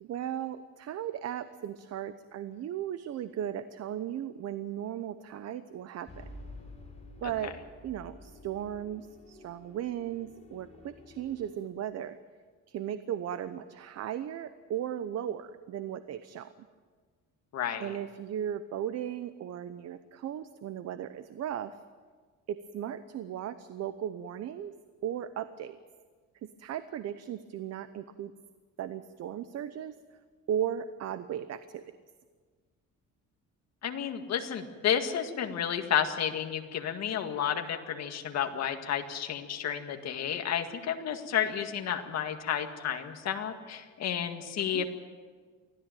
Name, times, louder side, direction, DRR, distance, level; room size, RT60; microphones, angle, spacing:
voice 1, 0.0-6.3 7.2-7.5 7.8-12.2 12.7-16.7 17.8-21.8 22.5-24.7 25.0-25.8 26.4-28.3 28.8-30.0 30.5-31.9 44.7-44.9, right 10 dB, 50° right, 12 dB, 0.8 m, -36 dB
sound 1, 6.1-11.5, left 2 dB, 20° left, 3.7 m, -50 dB
voice 2, 17.5-17.9 33.8-44.9, left 9 dB, 55° left, 6 dB, 1.9 m, -31 dB
24.5 x 16.0 x 9.2 m, 1.5 s
cardioid pair, 175°, 32 cm